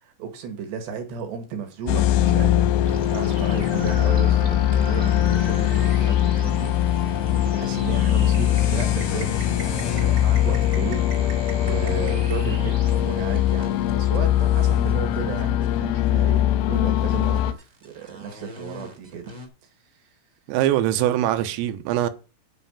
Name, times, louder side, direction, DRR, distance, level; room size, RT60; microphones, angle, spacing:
voice 1, 0.0-19.3, right 7 dB, 65° right, 3.6 m, -35 dB
sound 1, 1.9-17.5, left 12 dB, 90° left, 3.6 m, -21 dB
sound 2, 2.8-15.9 16.8-19.5, left 2 dB, 20° right, 1.0 m, -35 dB
voice 2, 20.5-22.1, right 13 dB, 85° right, 3.5 m, -22 dB
9.7 x 5.7 x 7.0 m
omnidirectional pair, 6.0 m